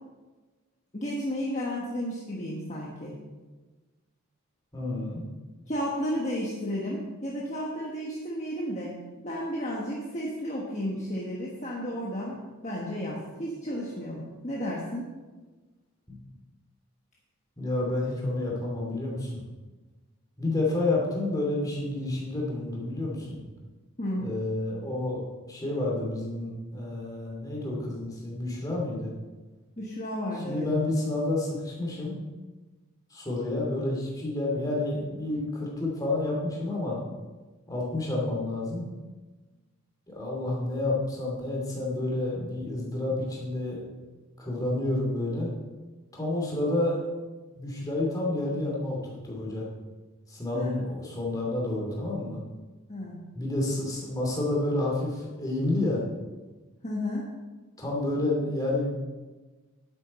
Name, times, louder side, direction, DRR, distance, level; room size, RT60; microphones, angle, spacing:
voice 1, 0.9-3.2 5.7-8.9 9.2-12.4 12.6-15.1 24.0-24.3 29.8-30.7 50.5-50.8 52.9-53.2 56.8-57.3, equal, 30° left, -4 dB, 1.4 m, -32 dB
voice 2, 4.7-5.2 16.1-16.2 17.6-19.4 20.4-23.4 24.2-25.2 25.5-29.1 30.3-32.2 33.1-37.0 37.7-38.9 40.1-43.8 44.4-45.5 46.1-47.0 47.6-49.0 49.2-49.7 50.3-52.4 53.3-56.0 57.8-58.9, left 2 dB, 15° left, -3 dB, 2.8 m, -29 dB
11.0 x 8.8 x 4.3 m, 1.2 s
head